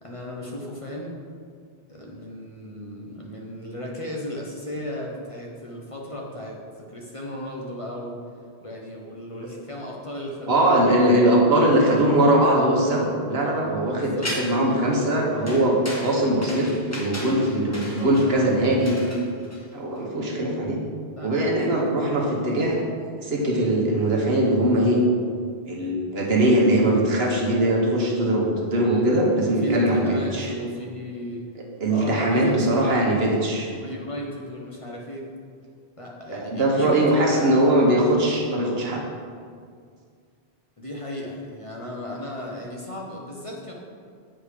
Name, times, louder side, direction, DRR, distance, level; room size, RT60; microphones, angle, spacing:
voice 1, 0.0-1.2 1.9-6.6 6.9-8.2 8.6-11.3 12.5-12.7 13.9-14.3 17.6-18.5 21.1-22.3 23.4-23.7 28.8-29.1 29.4-31.4 31.9-33.2 33.8-35.3 36.0-37.9 38.9-39.2 40.8-43.7, equal, 35° left, -2 dB, 0.9 m, -35 dB
voice 2, 10.5-19.0 19.7-20.8 21.2-22.9 23.2-25.0 25.7-30.5 31.6-33.7 36.3-39.0, right 1 dB, 70° right, -1 dB, 1.4 m, -21 dB
sound 1, 14.2-14.7 15.5-20.0, left 1 dB, 15° left, 1.2 m, -35 dB
7.6 x 5.0 x 4.9 m, 2.1 s
omnidirectional pair, 1.1 m